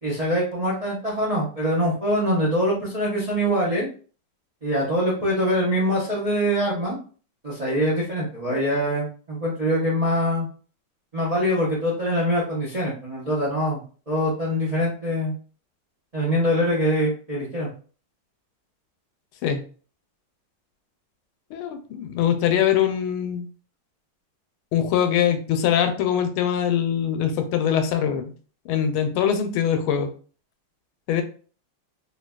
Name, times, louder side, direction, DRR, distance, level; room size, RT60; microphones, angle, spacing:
voice 1, 0.0-3.9 4.6-7.0 7.4-10.5 11.1-15.3 16.1-17.7, equal, 45° right, -5 dB, 0.4 m, -24 dB
voice 2, 21.5-23.5 24.7-28.3 28.6-30.1 31.1-31.2, left 9 dB, 80° left, 7 dB, 1.4 m, -23 dB
3.9 x 2.6 x 2.3 m, 0.40 s
omnidirectional pair, 2.3 m